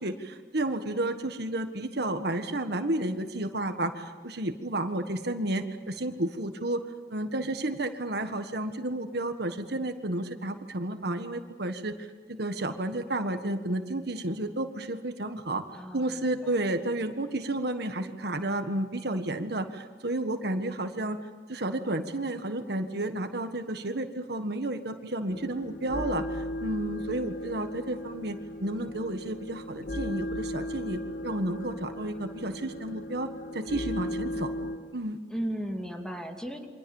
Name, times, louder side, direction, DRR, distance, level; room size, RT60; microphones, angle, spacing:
voice 1, 0.0-6.8 7.1-15.6 15.9-21.2 21.5-35.2, right 1 dB, 65° right, 7 dB, 1.7 m, -32 dB
voice 2, 15.7-16.6 35.3-36.7, equal, 5° left, 3 dB, 2.5 m, -36 dB
sound 1, 25.3-34.8, left 1 dB, 50° left, 2.2 m, -36 dB
29.0 x 24.5 x 7.3 m, 1.4 s
head